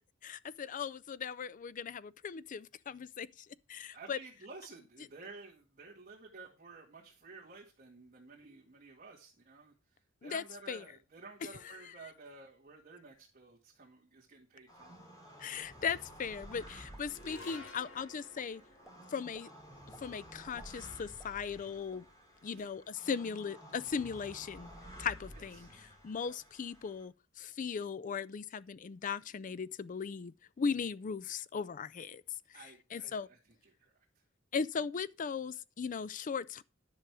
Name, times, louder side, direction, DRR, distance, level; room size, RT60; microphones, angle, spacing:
voice 1, 0.2-4.2 10.2-10.8 15.4-18.6 19.1-19.5 20.0-22.1 22.4-24.7 25.0-25.7 26.0-32.2 32.5-32.6 32.9-33.3 34.5-36.6, left 6 dB, 40° left, 0.4 m, -38 dB
voice 2, 3.9-14.9 22.6-22.7 25.3-25.7 26.2-26.4 32.5-34.0, right 3 dB, 40° right, 2.0 m, -53 dB
sound 1, 14.7-27.0, equal, 20° left, 3.2 m, -53 dB
sound 2, 16.5-17.0 17.4-17.6 18.0-18.5 18.8-18.9 19.3-19.5 19.9-20.1 20.4-21.6 21.9-22.0 22.4-22.8, right 1 dB, ahead, 1.4 m, -58 dB
sound 3, 17.1-23.6, left 2 dB, 65° left, 2.7 m, -56 dB
10.5 x 6.4 x 4.7 m
head